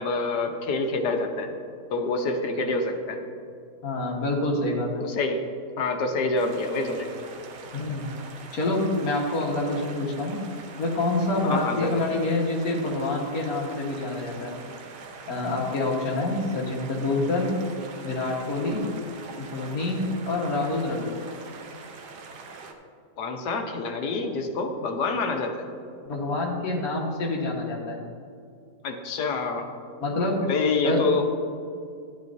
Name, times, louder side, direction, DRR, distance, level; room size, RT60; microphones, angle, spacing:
voice 1, 0.0-1.5 1.9-3.2 5.0-5.4 5.8-7.1 11.4-12.0 23.2-25.6 28.8-29.7 30.4-31.3, left 3 dB, 75° left, 4 dB, 1.5 m, -27 dB
voice 2, 3.8-5.0 7.7-8.1 8.5-10.4 10.8-14.6 15.3-17.5 18.0-18.8 19.4-21.1 26.0-28.1 30.0-30.4 30.8-31.0, left 2 dB, 60° left, -2 dB, 1.8 m, -27 dB
sound 1, 6.4-22.7, right 4 dB, 80° right, 1.5 m, -43 dB
12.5 x 10.5 x 2.7 m, 2.4 s
omnidirectional pair, 1.8 m